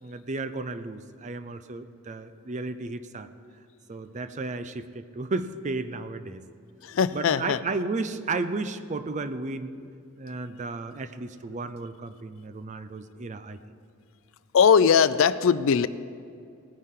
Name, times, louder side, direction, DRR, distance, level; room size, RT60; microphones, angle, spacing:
voice 1, 0.0-3.3 3.9-6.5 7.1-9.8 10.2-13.6, right 3 dB, 35° right, 11 dB, 0.5 m, -33 dB
voice 2, 6.8-7.6 14.5-15.9, left 6 dB, 70° left, 15 dB, 0.4 m, -20 dB
18.5 x 9.8 x 3.7 m, 2.4 s
head